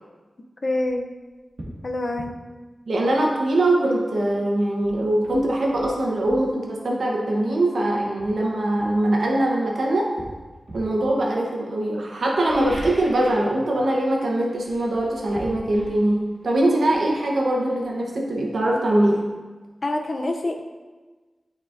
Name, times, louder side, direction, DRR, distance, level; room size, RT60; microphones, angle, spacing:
voice 1, 0.6-1.1 1.8-2.4 19.8-20.6, left 2 dB, 55° left, 4 dB, 0.6 m, -26 dB
sound 1, 0.8-1.0 1.6-1.8 2.2-2.4 4.3-4.4 4.8-6.4 7.5-7.7 8.2-9.6 10.2-11.0 12.3-13.5 13.8-14.2 14.5-18.1 18.3-18.4, right 1 dB, 65° right, 1.6 m, -41 dB
voice 2, 2.9-10.1 10.7-19.2, right 1 dB, 90° right, -1 dB, 1.0 m, -22 dB
8.6 x 4.2 x 2.6 m, 1.3 s
wide cardioid pair, 65°, 0 cm